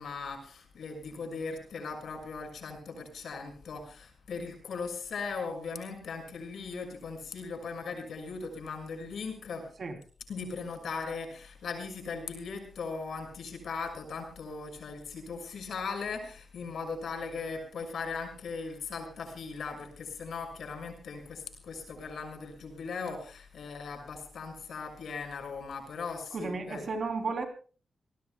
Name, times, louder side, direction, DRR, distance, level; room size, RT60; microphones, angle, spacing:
voice 1, 0.0-9.7 10.3-26.9, left 4 dB, 75° left, 4 dB, 6.3 m, -39 dB
voice 2, 26.3-27.4, right 4 dB, 50° right, 6 dB, 3.2 m, -33 dB
28.5 x 19.0 x 2.3 m, 0.39 s
wide cardioid pair, 170°, 0 cm